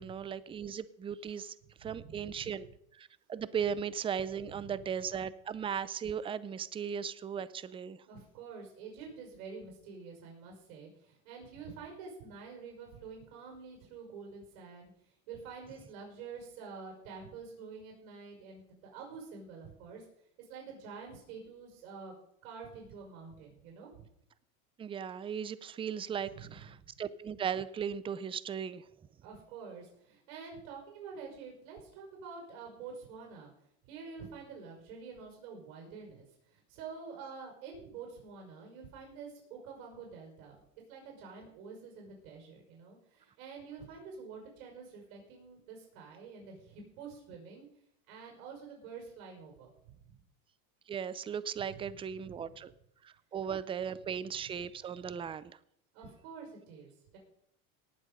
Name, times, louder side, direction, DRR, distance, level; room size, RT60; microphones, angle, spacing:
voice 1, 0.0-1.5 1.8-2.7 2.9-8.0 24.8-28.8 50.9-52.7 53.0-55.6, right 7 dB, 15° right, 16 dB, 0.4 m, -37 dB
voice 2, 1.8-2.5 4.4-4.8 8.1-14.9 15.3-20.0 20.4-22.2 22.4-24.1 26.2-26.9 29.2-33.5 33.8-40.5 40.9-47.7 48.1-50.2 51.7-52.4 55.9-57.2, right 5 dB, 70° right, 1 dB, 5.6 m, -48 dB
18.5 x 7.4 x 5.3 m, 0.72 s
supercardioid pair, 125°, 42 cm